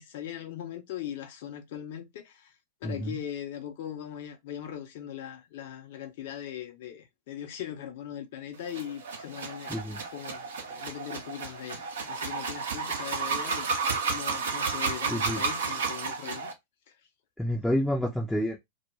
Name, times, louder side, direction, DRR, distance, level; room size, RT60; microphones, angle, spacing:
voice 1, 0.0-2.5 2.8-9.7 10.1-13.7 14.1-16.5, left 10 dB, 55° left, 0.6 m, -40 dB
voice 2, 2.8-3.2 9.7-10.0 15.1-15.4 17.4-18.6, equal, 5° left, 0.5 m, -29 dB
sound 1, 8.7-16.5, right 5 dB, 70° right, 0.6 m, -32 dB
2.3 x 2.2 x 2.9 m
figure-of-eight pair, 95°, 0 cm